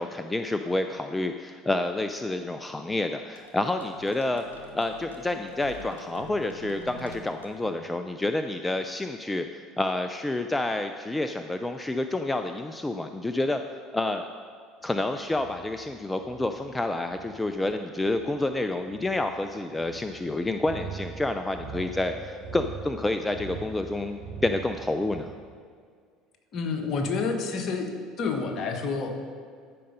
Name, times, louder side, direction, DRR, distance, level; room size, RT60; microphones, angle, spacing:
voice 1, 0.0-4.4 4.7-13.6 13.9-14.3 14.8-25.3, left 2 dB, 15° left, 7 dB, 0.5 m, -29 dB
sound 1, 3.4-8.2, left 1 dB, 90° left, 0.9 m, -46 dB
sound 2, 14.8-25.2, right 5 dB, 80° right, 2.7 m, -42 dB
voice 2, 26.5-27.9 28.2-29.1, left 4 dB, 50° left, 4 dB, 1.4 m, -28 dB
14.0 x 5.3 x 5.3 m, 2.1 s
hypercardioid pair, 65°, 0 cm